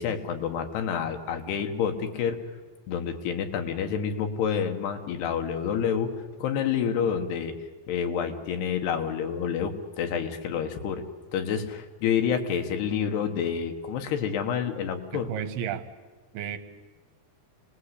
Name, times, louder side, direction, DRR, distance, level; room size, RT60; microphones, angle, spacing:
voice 1, 0.0-2.4 2.9-6.1 6.4-7.5 7.9-11.0 11.3-15.3, left 7 dB, 80° left, 6 dB, 3.6 m, -28 dB
voice 2, 15.1-15.8 16.3-16.6, right 9 dB, 75° right, 9 dB, 2.9 m, -32 dB
27.5 x 20.0 x 8.3 m, 1.3 s
omnidirectional pair, 4.7 m